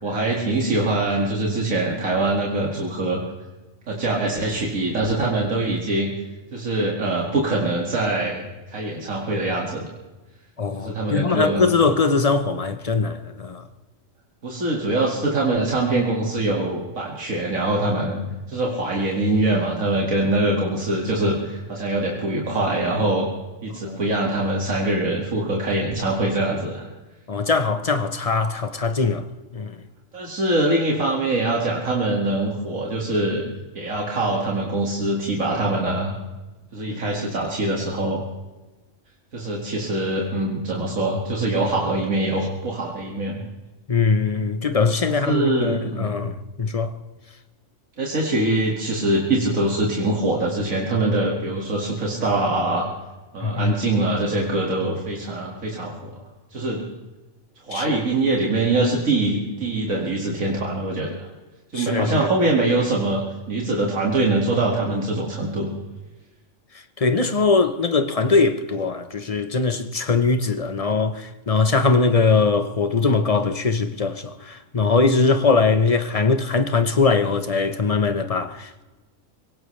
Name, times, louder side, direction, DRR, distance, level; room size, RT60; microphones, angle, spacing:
voice 1, 0.0-3.2 3.9-6.1 6.5-9.9 10.8-11.7 14.4-18.2 18.5-23.3 23.6-26.9 30.1-33.4 33.7-36.1 36.7-38.2 39.3-43.5 45.2-46.2 48.0-52.9 53.3-56.2 56.5-56.8 57.7-61.3 61.7-63.2 63.5-65.7, right 2 dB, 90° right, 2.6 m, -23 dB
voice 2, 10.6-13.7 23.9-24.0 27.3-29.3 29.5-29.8 36.9-37.0 43.9-46.9 53.4-53.8 57.7-58.0 61.7-62.3 67.0-78.8, left 4 dB, 30° left, 1.0 m, -21 dB
23.0 x 18.5 x 3.3 m
omnidirectional pair, 1.4 m